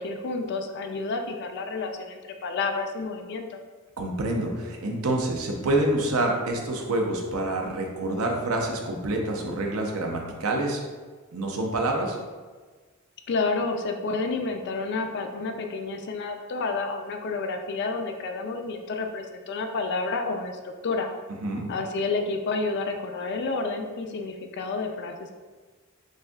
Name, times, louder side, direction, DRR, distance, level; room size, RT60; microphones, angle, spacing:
voice 1, 0.0-3.6 13.3-21.1 21.7-25.3, left 3 dB, 50° left, 5 dB, 0.4 m, -30 dB
voice 2, 4.0-10.8 11.3-12.2 21.4-21.7, right 1 dB, 70° right, 1 dB, 0.7 m, -27 dB
6.3 x 2.6 x 2.3 m, 1.4 s
head